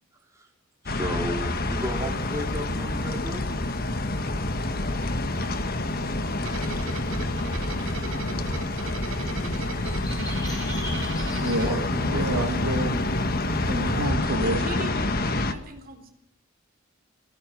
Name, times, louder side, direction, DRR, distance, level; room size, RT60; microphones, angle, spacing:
voice 1, 0.8-3.4 7.8-8.5 11.6-12.8, equal, 15° right, 0 dB, 4.9 m, -35 dB
sound 1, 0.9-15.5, left 2 dB, 45° left, 1.5 m, -27 dB
sound 2, 1.1-14.1, left 1 dB, 20° left, 6.1 m, -47 dB
voice 2, 5.1-5.5 6.0-6.2 6.9-7.0 9.4-9.6 14.4-16.1, right 2 dB, 45° right, 6 dB, 3.9 m, -40 dB
sound 3, 6.4-12.5, right 3 dB, 70° right, 3.6 m, -39 dB
voice 3, 11.4-13.2 13.7-14.6, right 2 dB, 85° right, 5 dB, 2.2 m, -29 dB
19.5 x 17.5 x 7.8 m, 0.81 s
head